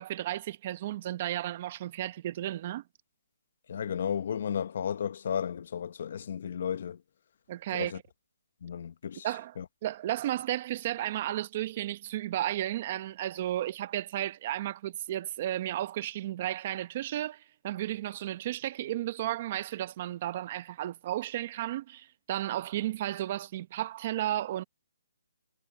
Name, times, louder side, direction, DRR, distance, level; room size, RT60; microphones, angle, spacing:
voice 1, 0.0-2.8 7.5-7.9 9.2-9.5 9.8-24.6, right 13 dB, 30° right, 1.1 m, -33 dB
voice 2, 3.7-7.0 7.7-8.0 8.6-9.3 9.6-9.7, left 8 dB, 50° left, 1.1 m, -33 dB
hypercardioid pair, 165°, 0 cm